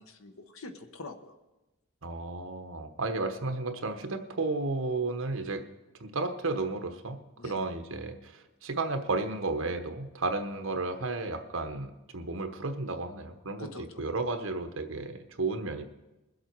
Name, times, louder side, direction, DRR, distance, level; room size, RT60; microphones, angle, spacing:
voice 1, 0.0-1.3 7.4-7.6 13.6-14.0, left 3 dB, 90° left, 7 dB, 1.1 m, -45 dB
voice 2, 2.0-5.6 6.0-13.7 14.0-15.8, right 3 dB, 75° right, 7 dB, 1.1 m, -33 dB
21.5 x 7.8 x 4.6 m, 1.0 s
head